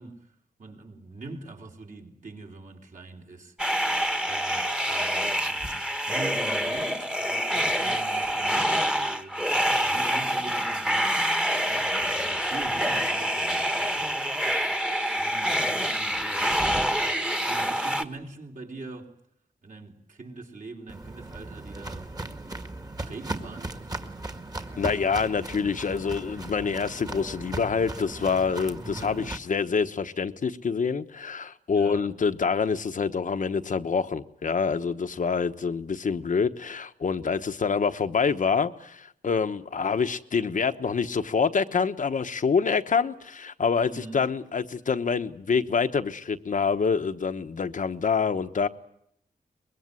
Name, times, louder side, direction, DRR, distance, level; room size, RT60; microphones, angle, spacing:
voice 1, 0.0-3.6 4.2-9.4 9.8-11.3 11.6-14.6 15.1-19.1 19.6-22.1 23.0-23.8 28.7-29.3 31.7-32.1 42.4-42.5 43.8-44.3, right 3 dB, 60° right, 3.7 m, -43 dB
sound 1, 3.6-18.0, equal, 5° right, 1.3 m, -26 dB
Walk footsteps, 20.9-29.4, right 2 dB, 25° right, 1.8 m, -37 dB
voice 2, 24.8-48.7, left 5 dB, 60° left, 1.1 m, -26 dB
24.0 x 22.0 x 9.7 m
wide cardioid pair, 160°, 15 cm